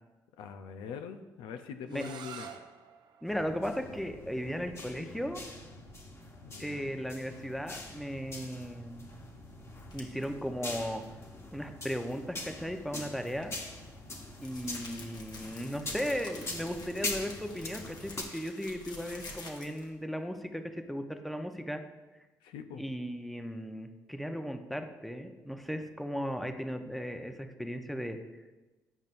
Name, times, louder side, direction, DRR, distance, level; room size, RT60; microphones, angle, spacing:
voice 1, 0.4-2.5 6.4-7.0 22.4-22.8, left 7 dB, 75° left, 7 dB, 0.4 m, -43 dB
sound 1, 1.9-7.6, right 7 dB, 60° right, 0.6 m, -52 dB
voice 2, 3.2-5.4 6.6-9.0 9.9-11.0 11.5-13.6 14.4-21.8 22.8-28.2, equal, ahead, 6 dB, 0.7 m, -36 dB
sound 2, 3.3-18.2, left 2 dB, 35° left, 1.2 m, -43 dB
sound 3, 9.9-10.2 13.3-19.9, left 2 dB, 55° left, 1.3 m, -48 dB
9.1 x 5.2 x 2.6 m, 1.2 s
hypercardioid pair, 55°, 8 cm